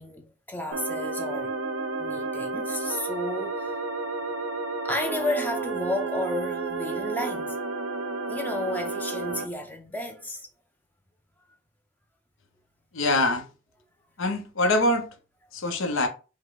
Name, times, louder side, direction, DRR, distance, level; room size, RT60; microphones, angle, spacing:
voice 1, 0.0-1.5 2.0-3.7 4.8-7.6 8.3-10.5, left 1 dB, 10° left, 0.5 m, -32 dB
sound 1, 0.7-9.4, right 3 dB, 90° right, 0.7 m, -31 dB
voice 2, 12.9-13.5 14.2-15.1 15.5-16.1, left 2 dB, 80° left, 0.8 m, -24 dB
5.3 x 2.2 x 3.9 m
head